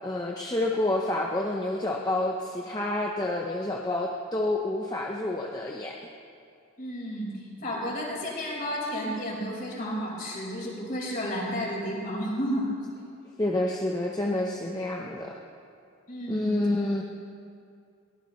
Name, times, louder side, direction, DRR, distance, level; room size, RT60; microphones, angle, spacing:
voice 1, 0.0-6.0 13.4-15.3 16.3-17.0, left 1 dB, 15° left, -1 dB, 0.8 m, -28 dB
voice 2, 6.8-7.3 7.6-12.7 16.1-16.5, equal, 40° left, -4 dB, 4.9 m, -32 dB
22.5 x 18.5 x 3.2 m, 2.4 s
head